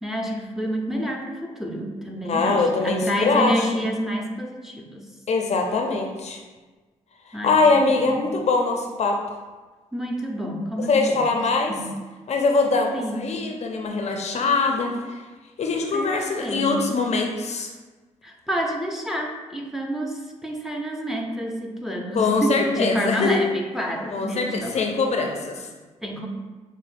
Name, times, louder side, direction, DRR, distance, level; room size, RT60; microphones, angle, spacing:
voice 1, 0.0-5.1 7.3-8.2 9.9-11.3 11.7-11.9 12.9-13.4 15.9-16.1 16.4-16.8 18.2-24.9 26.0-26.3, equal, ahead, 0 dB, 0.6 m, -28 dB
voice 2, 2.3-3.7 5.3-6.4 7.4-9.2 10.9-11.7 12.3-15.2 15.6-17.7 22.1-23.4 24.1-25.7, left 3 dB, 55° left, 2 dB, 0.5 m, -22 dB
5.7 x 2.1 x 2.5 m, 1.3 s
cardioid pair, 65°, 13 cm